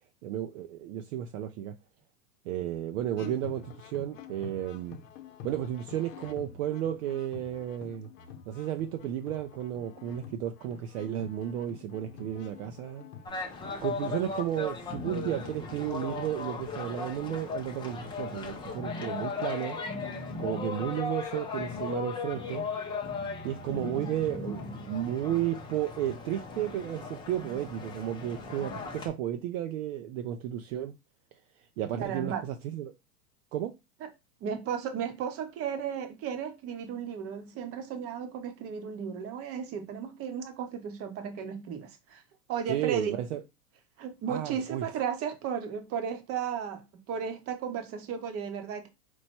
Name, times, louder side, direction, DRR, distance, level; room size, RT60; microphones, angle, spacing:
voice 1, 0.2-1.7 2.5-5.0 5.4-8.1 8.5-13.0 13.8-19.8 20.4-22.6 23.4-30.9 31.8-32.9 33.5-33.7 42.7-43.4 44.3-44.9, right 11 dB, 55° right, 0.6 m, -33 dB
sound 1, 3.2-13.7, left 7 dB, 60° left, 0.8 m, -48 dB
sound 2, 13.3-29.1, left 4 dB, 10° left, 0.5 m, -37 dB
voice 2, 32.0-32.4 34.0-34.1 34.4-42.2 42.5-43.2 44.0-48.9, right 7 dB, 30° right, 0.9 m, -35 dB
4.5 x 2.2 x 4.2 m
supercardioid pair, 135°, 46 cm